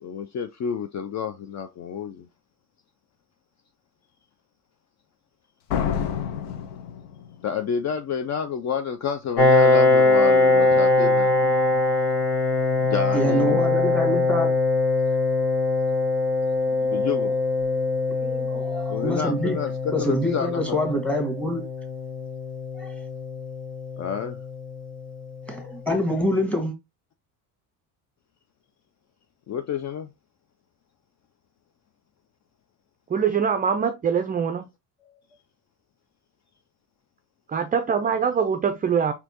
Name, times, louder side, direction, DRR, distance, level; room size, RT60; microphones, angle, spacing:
voice 1, 0.0-2.3 7.4-11.8 12.8-13.6 16.9-17.3 18.9-19.7 20.0-20.8 24.0-24.4 29.5-30.1, left 7 dB, 40° left, 0.5 m, -29 dB
Slam, 5.7-7.6, left 8 dB, 85° left, 0.7 m, -28 dB
Piano, 9.4-24.7, left 2 dB, 55° left, 1.3 m, -22 dB
voice 2, 13.1-14.5 17.9-19.6 19.9-21.6 22.7-22.9 25.5-26.7, equal, 5° left, 1.5 m, -26 dB
voice 3, 33.1-34.7 37.5-39.1, right 7 dB, 20° right, 0.4 m, -23 dB
4.2 x 2.8 x 2.8 m
supercardioid pair, 75°, 44 cm